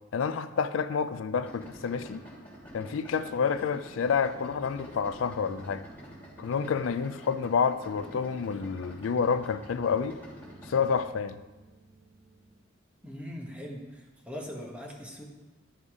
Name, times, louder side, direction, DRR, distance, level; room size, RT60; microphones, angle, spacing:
voice 1, 0.1-2.2 2.7-5.8 6.4-10.2 10.7-11.4, left 6 dB, 80° left, 12 dB, 0.4 m, -29 dB
sound 1, 1.3-12.5, right 1 dB, 75° right, 1.3 m, -55 dB
Idling, 1.4-11.0, equal, 10° left, 3.0 m, -48 dB
voice 2, 13.0-15.2, equal, 5° right, -1 dB, 1.3 m, -41 dB
11.5 x 5.4 x 4.9 m, 1.1 s
head